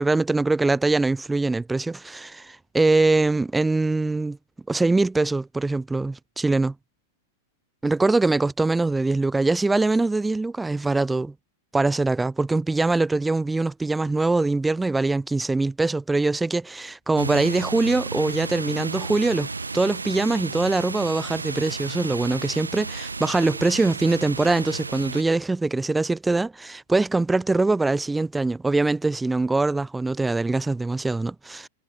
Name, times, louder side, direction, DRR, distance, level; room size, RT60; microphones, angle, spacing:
voice 1, 0.0-4.4 4.7-6.7 7.8-11.3 11.7-19.5 19.7-31.7, right 3 dB, 10° right, 5.4 m, -23 dB
sound 1, 17.2-25.2, right 4 dB, 90° right, 7.4 m, -33 dB
hypercardioid pair, 100°, 0 cm